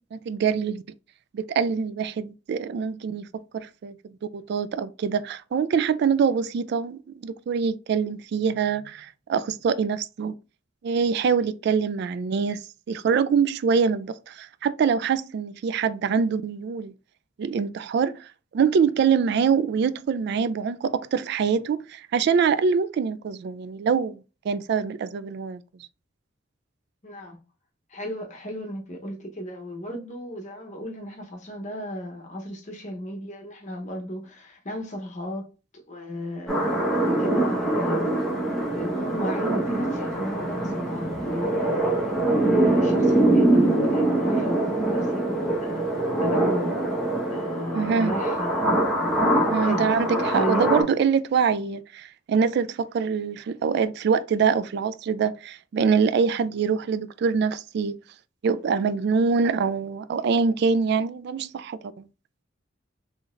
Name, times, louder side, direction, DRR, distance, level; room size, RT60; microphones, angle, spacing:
voice 1, 0.1-0.8 1.3-3.3 3.5-3.9 4.3-10.4 10.8-12.6 12.9-16.9 17.4-24.2 24.5-25.6 47.7-48.1 49.5-58.0 58.4-62.0, right 6 dB, 60° right, 0.3 m, -24 dB
voice 2, 27.0-27.4 27.9-35.5 35.9-36.6 37.0-38.2 38.7-42.1 42.3-46.8 47.3-48.7 49.4-49.9 50.3-50.6, equal, 40° left, 0.9 m, -34 dB
sound 1, 36.5-50.8, right 1 dB, ahead, 1.2 m, -23 dB
3.9 x 3.2 x 2.5 m
head